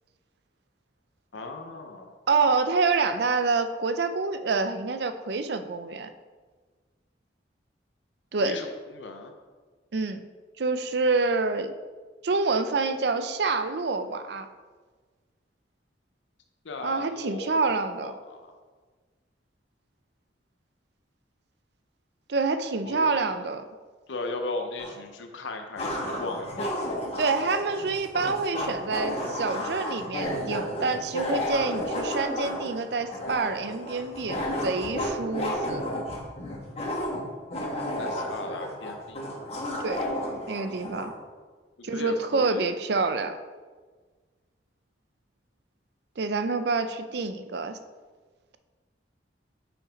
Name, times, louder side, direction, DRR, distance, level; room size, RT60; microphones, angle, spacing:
voice 1, 1.3-2.1 8.4-8.7 8.9-9.3 16.6-17.6 18.0-18.6 22.9-23.3 24.1-26.7 38.0-39.2 41.8-42.7, left 2 dB, 80° left, 5 dB, 0.7 m, -37 dB
voice 2, 2.3-6.1 8.3-8.6 9.9-10.2 10.6-11.7 12.2-14.5 16.8-18.2 22.3-23.6 27.2-35.9 39.8-40.1 40.5-41.1 41.8-43.4 46.2-47.8, right 4 dB, 60° right, 9 dB, 0.5 m, -27 dB
sound 1, 24.8-24.9 25.8-41.1, left 1 dB, 35° left, 1.2 m, -32 dB
5.8 x 5.2 x 5.1 m, 1.4 s
head